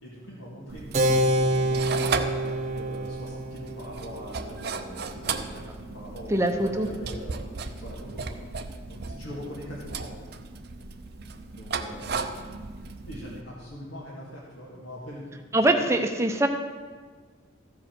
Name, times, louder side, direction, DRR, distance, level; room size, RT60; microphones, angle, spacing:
voice 1, 0.0-7.5 7.7-8.4 8.9-10.2 11.5-12.2 13.1-15.4 15.6-15.7, equal, 80° left, -7 dB, 1.8 m, -42 dB
sound 1, 0.7-13.4, right 4 dB, 55° right, 0.6 m, -36 dB
Keyboard (musical), 0.9-7.1, right 1 dB, 35° right, 1.0 m, -29 dB
voice 2, 6.3-6.9 15.5-16.5, right 1 dB, 15° right, 5 dB, 0.6 m, -23 dB
14.0 x 5.0 x 6.0 m, 1.6 s
head